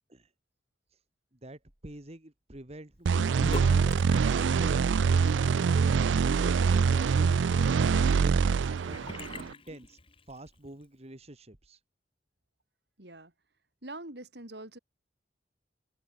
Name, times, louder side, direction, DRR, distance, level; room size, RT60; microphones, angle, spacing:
voice 1, 1.3-3.9 4.2-4.9 5.3-5.9 6.2-7.4 8.2-10.0 10.3-11.8, right 1 dB, 35° right, 2.0 m, -46 dB
sound 1, 3.1-9.5, right 5 dB, 85° right, 0.4 m, -25 dB
Sink (filling or washing) / Bathtub (filling or washing), 3.2-10.5, left 1 dB, 30° left, 2.5 m, -44 dB
voice 2, 13.0-13.3 13.8-14.8, right 2 dB, 65° right, 4.4 m, -44 dB
open air
head